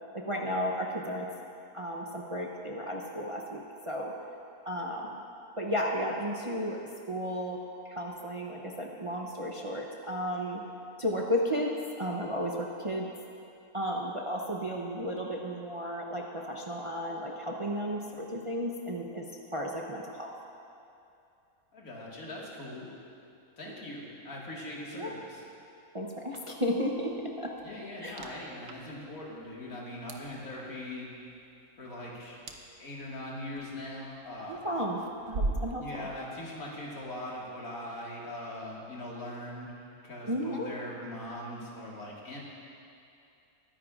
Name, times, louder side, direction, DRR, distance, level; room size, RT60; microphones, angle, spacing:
voice 1, 0.1-1.3 1.7-4.1 4.7-5.2 5.6-10.6 11.0-11.7 12.0-13.1 13.7-19.3 19.5-20.3 24.9-25.1 25.9-27.5 28.0-28.2 34.4-36.1 40.3-40.7, equal, 30° right, -1 dB, 0.6 m, -33 dB
voice 2, 21.7-22.9 23.6-25.4 27.6-31.1 31.8-32.4 32.8-34.7 35.8-39.7 40.0-42.4, left 1 dB, 75° left, -4 dB, 2.3 m, -41 dB
sound 1, 26.3-37.5, right 2 dB, 70° right, 1.2 m, -43 dB
22.0 x 10.0 x 2.5 m, 2.7 s
omnidirectional pair, 1.5 m